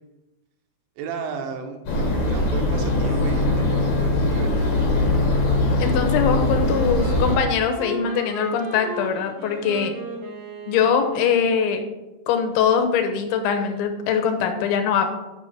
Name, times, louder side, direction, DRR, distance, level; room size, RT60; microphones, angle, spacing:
voice 1, 1.0-1.8 2.3-4.8, right 5 dB, 85° right, 4 dB, 3.3 m, -34 dB
sound 1, 1.9-7.4, left 2 dB, 60° left, 3.5 m, -21 dB
voice 2, 5.8-9.9 10.7-11.8 12.3-15.1, left 7 dB, 90° left, 5 dB, 3.3 m, -22 dB
Wind instrument woodwind instrument, 6.4-11.6, right 1 dB, 55° right, 3.5 m, -35 dB
8.5 x 4.8 x 5.8 m, 1.1 s
omnidirectional pair, 5.1 m